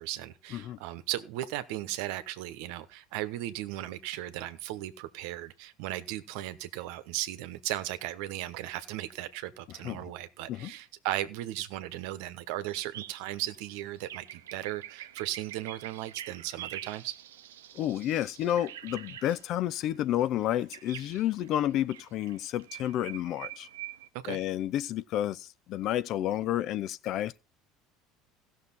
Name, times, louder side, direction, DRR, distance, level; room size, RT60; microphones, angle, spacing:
voice 1, 0.0-17.1 24.2-24.4, right 14 dB, 70° right, 1.0 m, -36 dB
sound 1, 12.7-24.1, right 12 dB, 85° right, 0.6 m, -46 dB
voice 2, 17.7-23.7 24.3-27.4, left 12 dB, 55° left, 0.6 m, -30 dB
16.0 x 6.5 x 4.2 m
hypercardioid pair, 80°, 0 cm